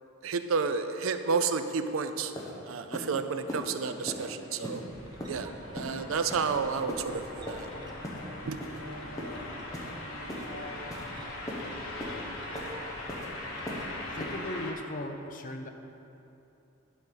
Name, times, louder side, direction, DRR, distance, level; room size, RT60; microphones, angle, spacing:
voice 1, 0.2-2.3 2.7-4.8 5.3-7.7 8.5-8.6, right 5 dB, 70° right, 9 dB, 0.5 m, -31 dB
sound 1, 1.9-2.0 2.4-2.5 2.9-3.1 3.5-3.6 4.1-4.2 4.6-4.8 5.2-5.4 5.8-5.9 6.3-6.5 6.9-7.0 7.5-7.6 8.0-8.2 8.6-8.8 9.2-9.4 9.7-9.9 10.3-10.5 10.9-11.1 11.5-11.6 12.0-12.2 12.6-12.7 13.1-13.3 13.7-13.8 14.2-14.3, left 1 dB, 15° left, 1.1 m, -38 dB
sound 2, 2.2-14.7, left 2 dB, 85° left, 1.2 m, -42 dB
sound 3, 4.9-14.4, right 1 dB, 20° right, 0.7 m, -48 dB
voice 2, 14.1-15.7, left 1 dB, 40° left, 5 dB, 0.6 m, -38 dB
10.5 x 5.3 x 5.7 m, 2.9 s
head